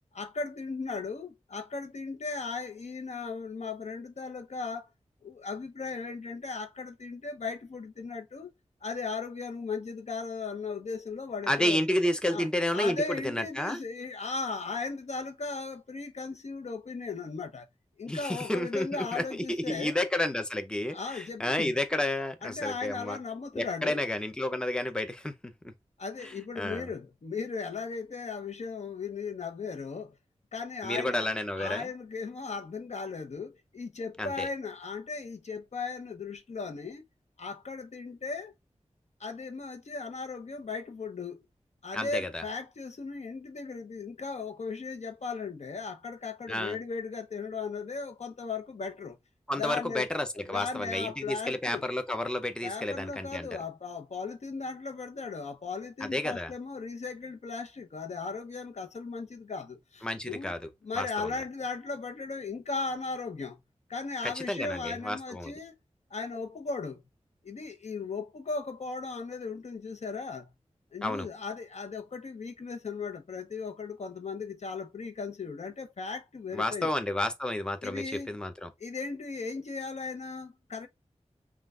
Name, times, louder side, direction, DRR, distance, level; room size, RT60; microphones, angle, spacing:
voice 1, 0.1-4.9 5.2-8.5 8.8-11.8 12.3-12.5 12.7-17.7 18.0-19.9 20.9-21.7 22.4-24.0 26.0-30.2 30.5-31.3 31.5-37.0 37.4-38.5 39.2-41.4 41.8-49.2 49.6-50.1 50.5-51.8 52.6-60.5 60.8-63.6 63.9-65.7 66.1-67.0 67.4-70.5 70.9-76.9 77.8-78.3 78.8-80.9, left 4 dB, 70° left, 0.8 m, -37 dB
voice 2, 11.5-13.8 18.1-23.2 23.5-25.7 26.2-26.9 30.8-31.9 34.2-34.5 41.9-42.4 46.5-46.8 49.5-53.6 56.0-56.5 60.0-61.3 64.2-65.5 71.0-71.3 76.5-78.7, left 1 dB, 5° left, 0.6 m, -31 dB
5.5 x 2.4 x 2.4 m
wide cardioid pair, 100°, 12 cm